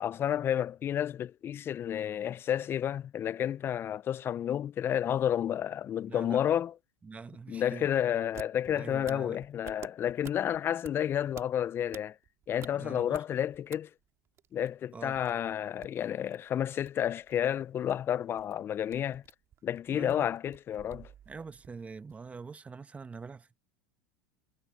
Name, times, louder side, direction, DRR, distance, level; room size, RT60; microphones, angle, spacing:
voice 1, 0.0-6.7 7.5-12.2 12.5-13.9 14.5-19.2 19.6-21.1, left 10 dB, 30° left, 0.4 m, -31 dB
voice 2, 6.1-6.4 7.0-7.9 8.7-9.4 12.7-13.2 14.9-15.2 19.9-20.3 21.3-23.6, right 5 dB, 20° right, 1.2 m, -44 dB
sound 1, 8.2-13.8 14.0-22.3, right 10 dB, 40° right, 2.1 m, -52 dB
hypercardioid pair, 95°, 8 cm